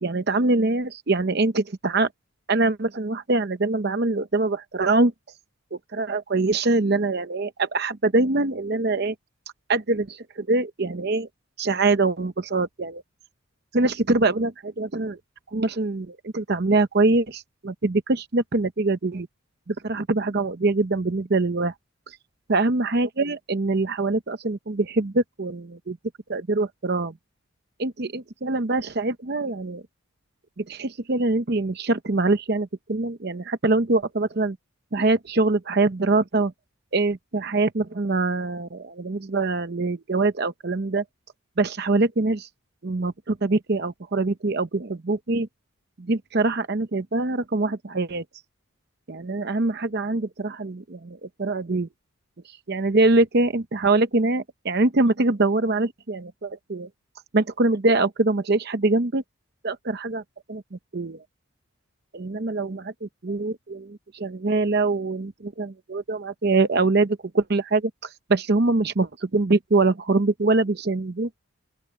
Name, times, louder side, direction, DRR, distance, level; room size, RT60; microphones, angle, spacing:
voice 1, 0.0-2.1 2.5-5.1 5.7-9.1 9.7-11.3 11.6-13.0 13.7-15.2 15.5-19.3 19.7-21.7 22.1-22.2 22.5-26.0 26.3-27.1 27.8-29.8 30.6-34.6 34.9-36.5 36.9-41.0 41.6-42.5 42.8-45.5 46.0-48.2 49.1-51.9 52.7-56.9 57.3-59.2 59.6-60.2 60.5-60.6 60.9-61.2 62.1-67.9 68.3-71.4, right 2 dB, 50° right, 0.8 m, -24 dB
open air
head